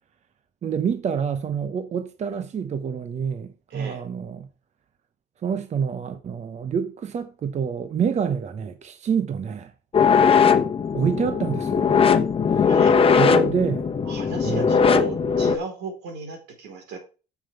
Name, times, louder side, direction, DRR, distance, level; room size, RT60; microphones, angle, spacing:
voice 1, 0.6-4.5 5.4-9.7 10.9-12.0 12.5-12.6 13.1-13.9 14.4-14.7, right 7 dB, 40° right, 0.9 m, -27 dB
voice 2, 3.7-4.0 12.6-12.9 14.0-17.0, right 5 dB, 85° right, 4.9 m, -35 dB
sound 1, 9.9-15.6, left 6 dB, 35° left, 1.0 m, -19 dB
7.3 x 7.1 x 6.7 m
cardioid pair, 110°, 17 cm